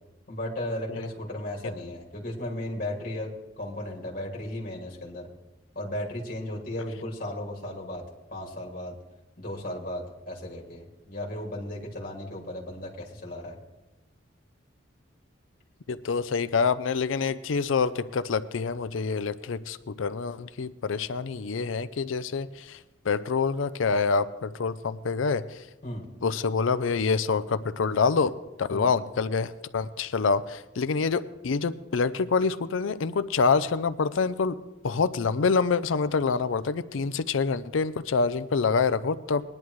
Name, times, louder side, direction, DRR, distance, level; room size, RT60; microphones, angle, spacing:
voice 1, 0.3-3.3 3.6-5.3 5.7-8.0 8.3-8.9 9.4-13.6 25.8-26.1 28.7-28.9, left 1 dB, 45° left, -2 dB, 2.4 m, -35 dB
voice 2, 15.9-22.8 23.1-25.4 26.2-28.3 28.6-34.5 34.8-39.4, left 5 dB, 85° left, 14 dB, 0.5 m, -26 dB
20.0 x 10.5 x 3.1 m, 1.1 s
head